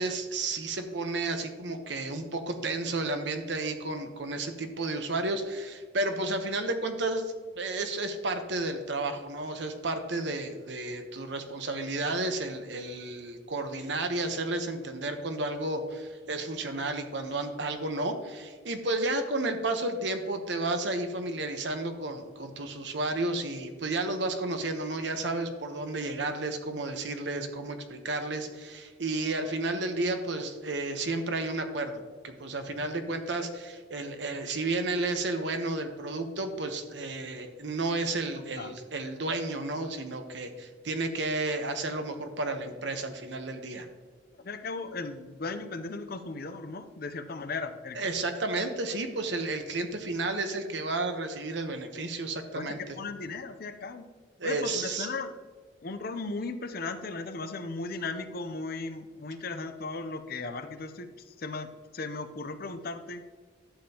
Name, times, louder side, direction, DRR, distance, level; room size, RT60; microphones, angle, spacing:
voice 1, 0.0-43.9 47.9-52.8 54.4-55.1, right 2 dB, 65° right, 6 dB, 1.0 m, -32 dB
voice 2, 38.0-38.7 44.4-48.0 52.5-54.1 54.4-55.3 55.8-63.2, left 3 dB, 50° left, 9 dB, 0.6 m, -37 dB
11.5 x 7.4 x 2.9 m, 1.5 s
head